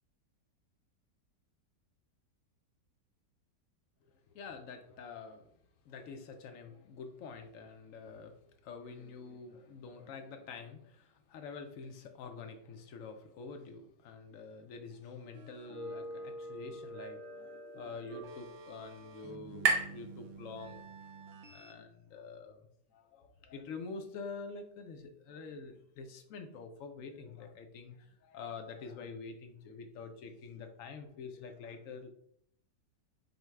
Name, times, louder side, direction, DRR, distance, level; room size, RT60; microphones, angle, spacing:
voice 1, 4.0-5.6 5.8-20.9 21.5-32.1, left 4 dB, 75° left, 6 dB, 0.7 m, -47 dB
sound 1, 15.3-21.7, right 1 dB, 80° right, 0.6 m, -47 dB
sound 2, 17.3-21.1, right 4 dB, 65° right, 1.2 m, -37 dB
5.2 x 2.2 x 4.6 m, 0.70 s
omnidirectional pair, 1.9 m